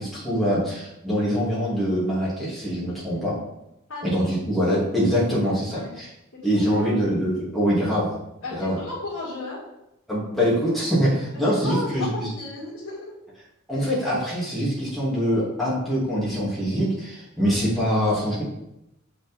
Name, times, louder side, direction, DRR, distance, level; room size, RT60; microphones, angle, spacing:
voice 1, 0.0-3.4 4.0-6.1 6.4-8.1 8.5-8.8 10.1-12.3 13.7-18.4, equal, ahead, -9 dB, 2.8 m, -24 dB
voice 2, 6.5-7.0 7.2-7.5 8.4-9.6 11.6-13.1 17.4-17.6, left 2 dB, 75° left, -10 dB, 2.4 m, -34 dB
6.9 x 5.7 x 3.7 m, 0.85 s
head